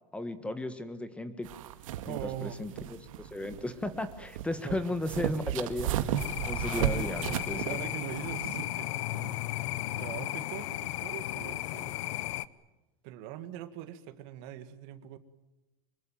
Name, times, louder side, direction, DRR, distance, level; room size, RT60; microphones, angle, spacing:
voice 1, 0.1-1.5 2.1-7.6, left 1 dB, 5° left, 11 dB, 1.4 m, -35 dB
sound 1, 1.5-8.6, right 11 dB, 85° right, 1.9 m, -35 dB
voice 2, 2.0-2.6 4.6-5.0 6.9-9.4 10.0-12.1 13.0-15.2, right 11 dB, 55° right, 11 dB, 1.9 m, -42 dB
sound 2, 6.2-12.5, left 16 dB, 70° left, 0.9 m, -35 dB
25.0 x 22.0 x 9.2 m, 1.0 s
supercardioid pair, 145°, 17 cm